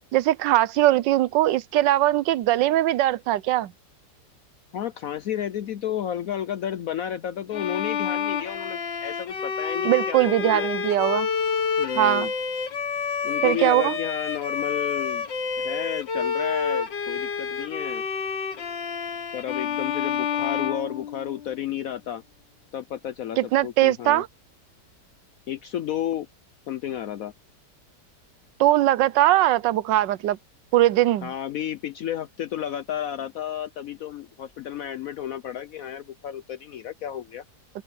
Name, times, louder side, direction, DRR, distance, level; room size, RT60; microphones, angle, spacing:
voice 1, 0.1-3.7 9.8-11.3 12.0-12.3 13.4-14.0 23.4-24.3 28.6-30.4 30.7-31.3, right 14 dB, 85° right, 1.3 m, -21 dB
voice 2, 4.7-10.7 11.8-12.3 13.2-15.3 15.6-18.1 19.3-22.2 22.7-24.2 25.5-26.3 26.7-27.3 31.2-37.4, left 10 dB, 65° left, 0.9 m, -32 dB
Bowed string instrument, 7.5-21.6, left 6 dB, 90° left, 2.5 m, -29 dB
open air
omnidirectional pair, 1.9 m